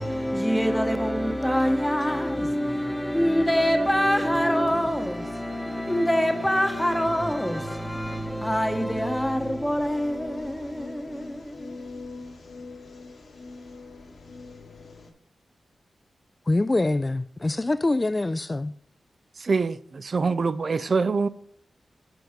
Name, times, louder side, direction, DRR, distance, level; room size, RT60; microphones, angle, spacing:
voice 1, 0.0-12.0, equal, 5° left, 1.0 m, -25 dB
sound 1, 7.6-15.1, left 3 dB, 70° left, 1.4 m, -43 dB
voice 2, 16.5-18.7, left 2 dB, 25° left, 0.3 m, -24 dB
voice 3, 19.4-21.3, right 4 dB, 55° right, 0.3 m, -24 dB
7.9 x 4.5 x 5.1 m
cardioid pair, 65°, 0 cm